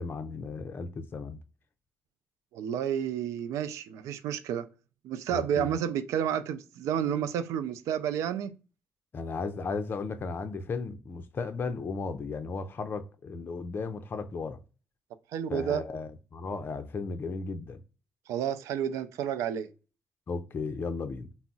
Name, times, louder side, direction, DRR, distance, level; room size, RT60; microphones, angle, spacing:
voice 1, 0.0-1.4 5.3-5.7 9.1-14.6 15.5-17.8 20.3-21.3, left 4 dB, 45° left, 0.4 m, -35 dB
voice 2, 2.5-4.7 5.0-8.5 15.3-15.8 18.3-19.7, right 9 dB, 85° right, 0.3 m, -30 dB
2.2 x 2.0 x 3.8 m
supercardioid pair, 70°, 5 cm